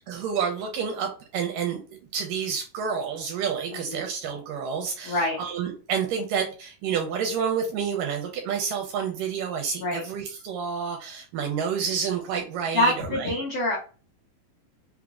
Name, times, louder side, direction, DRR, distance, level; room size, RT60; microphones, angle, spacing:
voice 1, 0.1-13.3, right 7 dB, 80° right, 3 dB, 1.9 m, -29 dB
voice 2, 5.0-5.4 9.8-10.0 12.7-13.8, left 1 dB, 90° left, -5 dB, 1.3 m, -25 dB
5.7 x 2.0 x 2.4 m, 0.36 s
omnidirectional pair, 4.2 m